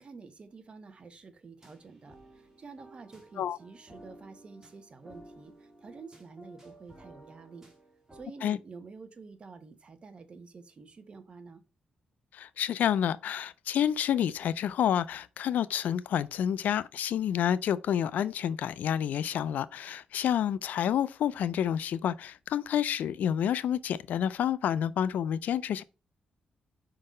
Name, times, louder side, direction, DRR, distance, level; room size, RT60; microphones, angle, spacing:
voice 1, 0.0-7.7 8.1-11.6, right 4 dB, 40° right, 1.0 m, -49 dB
sound 1, 1.6-8.2, right 1 dB, 15° right, 2.1 m, -54 dB
voice 2, 12.3-25.8, left 9 dB, 80° left, 0.4 m, -29 dB
5.3 x 3.9 x 5.1 m
cardioid pair, 110°, 3 cm